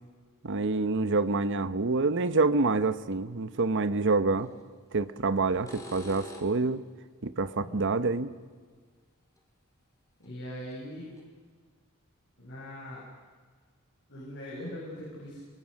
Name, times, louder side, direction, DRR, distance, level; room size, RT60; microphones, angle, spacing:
voice 1, 0.4-4.5 4.9-6.8 7.2-8.3, right 3 dB, 60° right, 13 dB, 0.9 m, -27 dB
sound 1, 4.4-4.6 5.4-6.7 9.4-9.5 10.2-10.3 10.7-10.8 11.2-11.3, left 1 dB, 15° left, 4.1 m, -45 dB
voice 2, 10.2-11.1 12.4-13.0 14.1-15.4, equal, 60° left, -5 dB, 6.8 m, -41 dB
28.5 x 23.5 x 6.5 m, 1.5 s
head